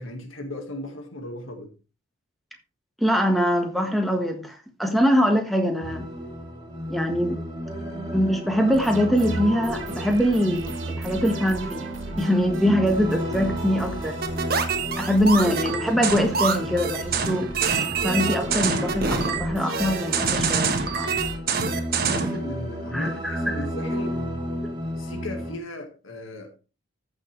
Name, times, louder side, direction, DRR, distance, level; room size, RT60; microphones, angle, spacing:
voice 1, 0.0-1.7 21.9-24.2 25.0-26.6, left 1 dB, 85° left, 1.9 m, -36 dB
voice 2, 3.0-6.1 6.9-7.4 8.1-11.9 12.1-14.2 15.0-17.5 18.0-21.1 22.9-23.6, equal, ahead, 1.5 m, -23 dB
sound 1, 5.8-25.6, equal, 20° right, 3.0 m, -32 dB
sound 2, 8.7-21.4, right 2 dB, 70° right, 2.1 m, -38 dB
sound 3, 14.2-22.4, right 5 dB, 50° right, 1.4 m, -25 dB
14.5 x 6.2 x 3.3 m
head